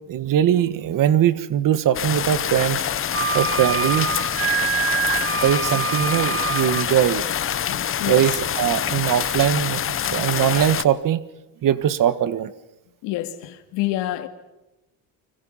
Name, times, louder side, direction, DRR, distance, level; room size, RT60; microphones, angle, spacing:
voice 1, 0.1-2.8 3.3-4.1 5.0-5.1 5.4-7.2 8.0-11.2 11.6-12.5, right 10 dB, 50° right, 1.5 m, -21 dB
sound 1, 1.9-10.8, left 9 dB, 30° left, 0.8 m, -26 dB
Wind instrument woodwind instrument, 3.1-6.9, right 7 dB, 30° right, 1.2 m, -25 dB
voice 2, 7.7-8.3 13.0-14.3, left 15 dB, 90° left, 2.3 m, -28 dB
30.0 x 25.0 x 5.7 m
cardioid pair, 135°, 42 cm